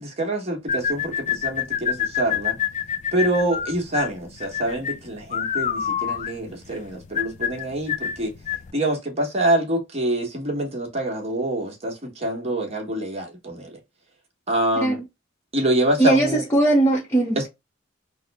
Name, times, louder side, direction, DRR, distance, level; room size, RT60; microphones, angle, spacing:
voice 1, 0.0-2.6 3.1-8.3 8.7-13.8 14.5-15.0 15.5-16.4 17.4-17.5, right 1 dB, 35° right, 1.2 m, -25 dB
sound 1, 0.7-8.7, left 9 dB, 40° left, 0.3 m, -27 dB
voice 2, 16.0-17.4, right 2 dB, 15° left, 0.7 m, -19 dB
3.6 x 2.1 x 3.3 m
head